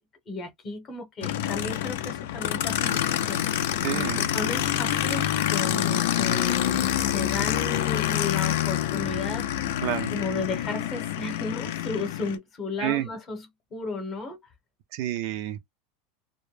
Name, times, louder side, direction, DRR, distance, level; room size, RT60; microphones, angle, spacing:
voice 1, 0.3-9.8 10.1-14.4, left 3 dB, 25° left, 0.8 m, -34 dB
Aircraft, 1.2-12.4, left 12 dB, 70° left, 0.4 m, -27 dB
voice 2, 3.8-4.2 9.8-10.1 12.8-13.1 14.9-15.6, right 13 dB, 50° right, 0.4 m, -29 dB
2.1 x 2.0 x 3.1 m
supercardioid pair, 170°, 0 cm